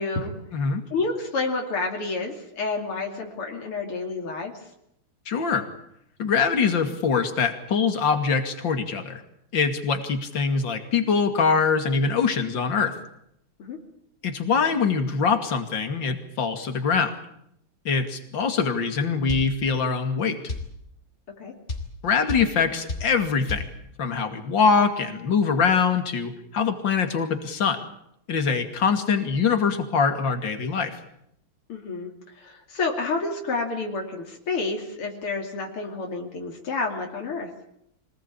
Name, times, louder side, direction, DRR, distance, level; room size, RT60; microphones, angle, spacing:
voice 1, 0.0-0.3 0.9-4.5 13.6-13.8 21.4-21.5 31.7-32.1 32.4-37.5, left 3 dB, 85° left, 2 dB, 3.7 m, -29 dB
voice 2, 5.3-5.7 6.2-9.2 9.5-12.9 14.2-17.1 17.8-20.4 22.0-23.7 24.0-27.8 28.3-31.0, left 5 dB, 60° left, 7 dB, 3.2 m, -23 dB
sound 1, 19.3-19.5 20.5-20.7 21.7-21.9 22.3-22.5 22.9-23.1 23.5-23.7, left 3 dB, 30° left, 4.0 m, -30 dB
25.0 x 19.5 x 8.7 m, 0.76 s
omnidirectional pair, 2.4 m